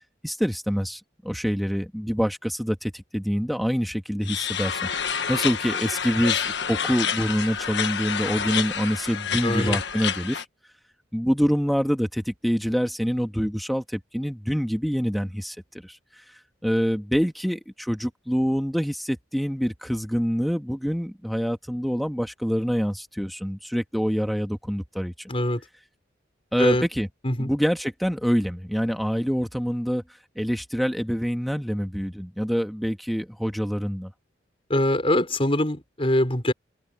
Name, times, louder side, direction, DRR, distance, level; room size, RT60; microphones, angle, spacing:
voice 1, 0.2-10.4 11.1-15.6 15.8-16.0 16.6-25.3 26.5-27.1 27.4-30.0 30.4-34.1, equal, ahead, 1.9 m, -26 dB
sound 1, 4.2-10.4, left 7 dB, 65° left, 1.4 m, -28 dB
voice 2, 9.4-9.8 25.3-25.6 26.6-26.9 27.2-27.5 34.7-36.5, left 1 dB, 30° left, 5.2 m, -23 dB
head